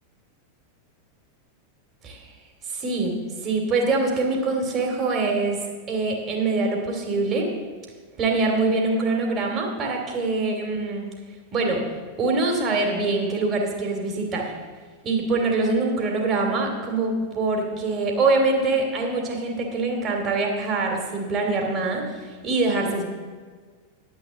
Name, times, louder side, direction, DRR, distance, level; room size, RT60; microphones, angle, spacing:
voice 1, 2.7-3.1 3.4-5.6 5.9-7.5 8.2-11.0 11.5-11.8 12.2-14.4 15.0-23.0, right 3 dB, 30° right, 1 dB, 2.6 m, -24 dB
10.5 x 6.2 x 7.4 m, 1.5 s
figure-of-eight pair, 90°, 0 cm